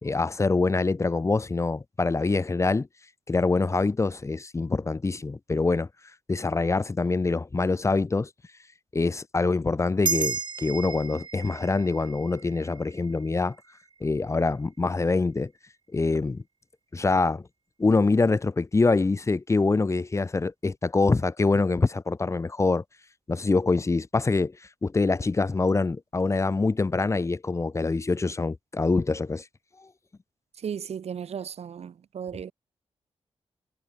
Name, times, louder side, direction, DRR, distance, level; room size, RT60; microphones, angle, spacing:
voice 1, 0.0-2.9 3.3-5.9 6.3-8.3 8.9-13.6 14.0-15.5 15.9-16.4 16.9-17.4 17.8-22.8 23.3-24.6 24.8-29.4, left 3 dB, 25° left, 2.1 m, -25 dB
sound 1, 10.0-14.8, right 5 dB, 45° right, 2.1 m, -34 dB
voice 2, 30.6-32.5, right 8 dB, 70° right, 1.9 m, -35 dB
wide cardioid pair, 145°, 11 cm